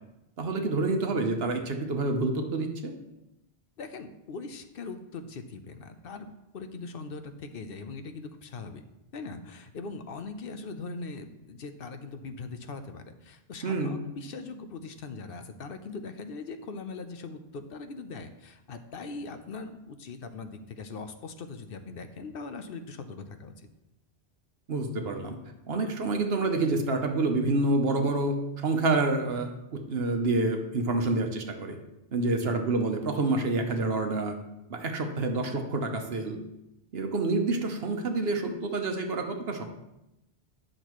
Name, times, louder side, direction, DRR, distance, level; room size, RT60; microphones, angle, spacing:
voice 1, 0.4-2.9 13.6-14.0 24.7-25.4 25.7-31.8 32.1-34.4 34.7-36.4 36.9-39.6, right 2 dB, 70° right, 4 dB, 1.1 m, -28 dB
voice 2, 3.8-8.8 9.1-23.7 32.2-32.6, left 4 dB, 65° left, 8 dB, 0.8 m, -41 dB
9.9 x 6.5 x 3.1 m, 0.91 s
omnidirectional pair, 1.1 m